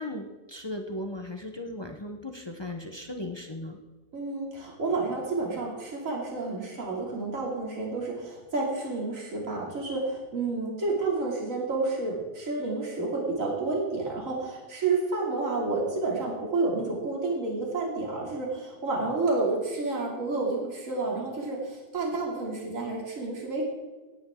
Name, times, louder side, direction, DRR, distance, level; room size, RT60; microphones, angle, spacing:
voice 1, 0.0-3.8, left 1 dB, 30° left, 4 dB, 0.5 m, -37 dB
voice 2, 4.1-23.7, right 3 dB, 45° right, -2 dB, 3.1 m, -30 dB
17.0 x 9.9 x 3.7 m, 1.2 s
omnidirectional pair, 1.9 m